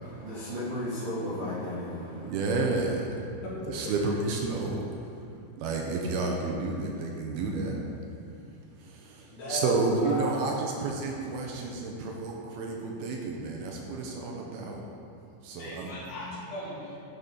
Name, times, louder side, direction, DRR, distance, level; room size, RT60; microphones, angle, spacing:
voice 1, 0.0-2.6, left 1 dB, 60° right, -12 dB, 1.3 m, -35 dB
voice 2, 2.2-3.1 3.7-4.8 5.6-7.8 8.8-14.8 15.4-15.9, right 3 dB, 80° right, 0 dB, 2.5 m, -30 dB
voice 3, 3.4-3.8 9.3-10.6 15.6-17.0, equal, 75° left, -8 dB, 4.0 m, -36 dB
12.0 x 5.3 x 4.1 m, 2.6 s
omnidirectional pair, 4.7 m